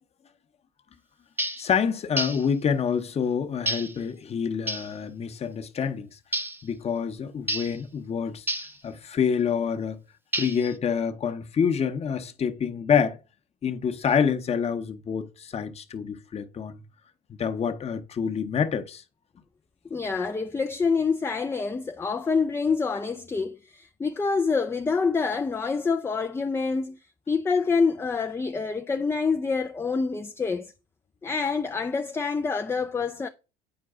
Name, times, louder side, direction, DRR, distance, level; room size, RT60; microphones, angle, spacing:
sound 1, 1.4-1.7 2.2-2.5 3.7-4.0 4.7-4.9 6.3-6.6 7.5-7.8 8.5-8.8 10.3-10.7, right 1 dB, 10° right, 0.9 m, -30 dB
voice 1, 1.6-6.1 6.6-8.5 8.8-10.0 10.4-13.2 13.6-16.8 17.3-19.0, left 7 dB, 30° left, 0.9 m, -27 dB
voice 2, 19.9-27.0 27.3-30.7 31.2-33.3, left 4 dB, 10° left, 0.4 m, -26 dB
8.8 x 4.6 x 3.6 m
hypercardioid pair, 85°, 20 cm